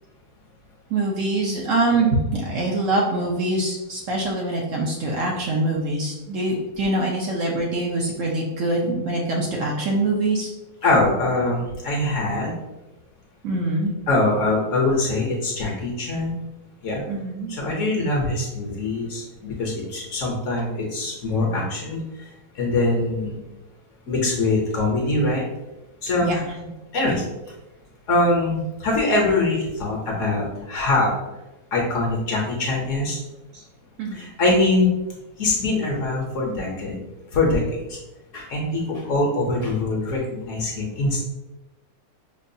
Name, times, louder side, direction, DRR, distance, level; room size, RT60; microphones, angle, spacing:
voice 1, 0.9-10.5 13.4-13.9 17.1-17.5 26.2-26.4 34.0-34.2, right 2 dB, 65° right, -2 dB, 0.9 m, -24 dB
voice 2, 10.8-12.5 14.1-16.4 16.8-17.0 17.5-22.0 22.5-23.4 24.1-25.4 26.0-26.3 26.9-27.2 28.1-31.1 31.7-33.2 34.1-34.9 35.4-37.0 37.3-38.0 38.3-41.2, left 2 dB, 60° left, -1 dB, 1.0 m, -23 dB
5.2 x 2.4 x 2.6 m, 1.0 s
omnidirectional pair, 1.7 m